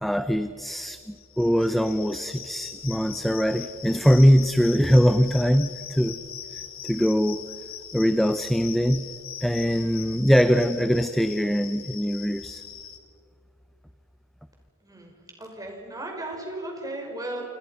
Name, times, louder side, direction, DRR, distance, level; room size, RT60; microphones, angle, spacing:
voice 1, 0.0-6.2 6.5-7.4 7.9-9.1 9.4-12.6, equal, ahead, 10 dB, 0.5 m, -22 dB
sound 1, 1.1-13.0, left 9 dB, 65° left, 2.5 m, -41 dB
voice 2, 14.8-17.4, right 1 dB, 15° right, 1 dB, 5.2 m, -36 dB
28.0 x 28.0 x 5.6 m, 2.3 s
head